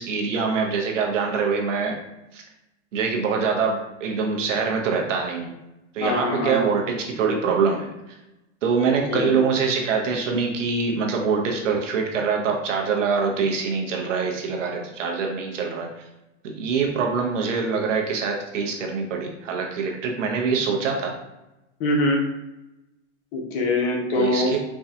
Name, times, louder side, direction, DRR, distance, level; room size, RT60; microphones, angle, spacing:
voice 1, 0.0-2.0 2.3-2.4 2.9-5.5 5.9-8.0 8.6-15.9 16.6-21.1 24.2-24.6, right 5 dB, 80° right, 1 dB, 1.0 m, -24 dB
voice 2, 6.0-6.6 8.8-9.3 21.8-22.2 23.3-24.6, left 2 dB, 40° left, 1 dB, 0.9 m, -24 dB
4.6 x 2.3 x 2.7 m, 0.95 s
hypercardioid pair, 125°, 36 cm